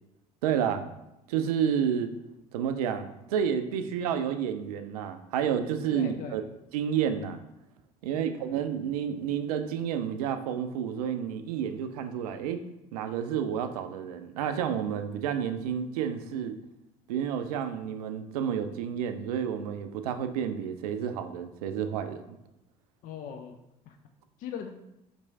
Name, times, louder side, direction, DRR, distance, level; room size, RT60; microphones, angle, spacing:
voice 1, 0.4-0.9 1.3-2.1 2.5-6.4 6.7-7.4 8.0-12.6 12.9-16.6 17.1-22.2, right 8 dB, 70° right, 9 dB, 0.4 m, -30 dB
voice 2, 5.9-6.3 8.1-8.6 23.0-23.6 23.9-24.0 24.4-24.7, left 7 dB, 45° left, 4 dB, 0.4 m, -40 dB
4.4 x 3.0 x 2.7 m, 0.87 s
figure-of-eight pair, 60°, 20 cm